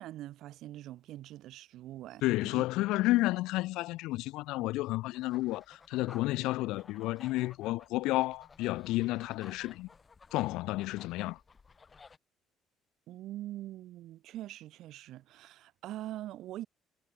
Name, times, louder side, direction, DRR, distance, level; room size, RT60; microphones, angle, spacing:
voice 1, 0.0-2.7 13.1-16.7, right 14 dB, 70° right, 3.4 m, -43 dB
voice 2, 2.2-9.9 10.3-11.4, left 19 dB, 90° left, 2.3 m, -31 dB
sound 1, 5.1-12.2, left 4 dB, 25° left, 7.2 m, -56 dB
cardioid pair, 140°, 0 cm